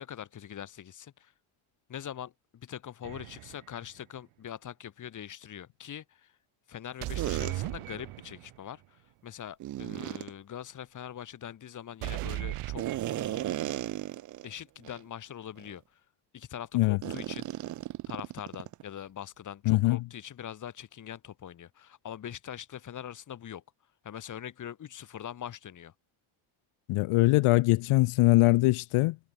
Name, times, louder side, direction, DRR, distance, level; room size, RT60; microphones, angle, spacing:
voice 1, 0.0-1.3 1.9-6.3 6.7-12.9 13.1-14.0 14.4-16.0 16.3-17.7 18.1-23.6 24.0-25.9, left 10 dB, 40° left, 1.8 m, -43 dB
sound 1, 3.0-3.7 7.0-8.6 12.0-13.6, right 17 dB, 90° right, 3.4 m, -37 dB
sound 2, 7.2-7.5 9.6-10.3 12.8-14.5 14.8-15.0 15.6-15.7 17.0-18.8, right 14 dB, 40° right, 0.4 m, -35 dB
voice 2, 19.7-20.0 26.9-29.2, left 20 dB, 90° left, 1.0 m, -22 dB
cardioid pair, 160°, 49 cm